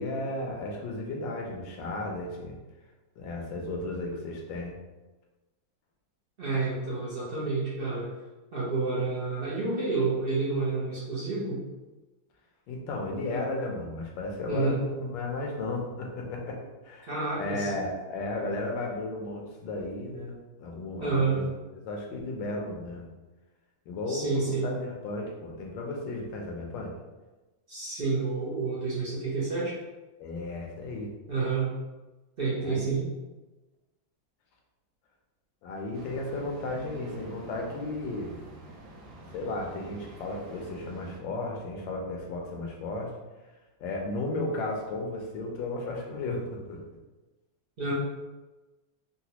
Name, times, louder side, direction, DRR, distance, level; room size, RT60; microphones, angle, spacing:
voice 1, 0.0-2.6 3.2-4.8 12.7-17.1 17.3-21.4 21.8-23.1 23.9-26.9 30.2-31.1 32.6-33.1 35.6-38.3 39.3-43.1 43.8-46.8, left 2 dB, 80° left, 0 dB, 1.4 m, -34 dB
voice 2, 6.4-8.1 8.5-11.6 14.5-14.8 17.1-17.7 21.0-21.4 24.1-24.7 27.7-29.7 31.3-31.7 32.4-33.0 47.8-47.9, right 4 dB, 60° right, -7 dB, 0.6 m, -29 dB
sound 1, 35.9-41.2, right 1 dB, 85° right, 1.3 m, -47 dB
3.9 x 2.1 x 2.9 m, 1.1 s
omnidirectional pair, 2.0 m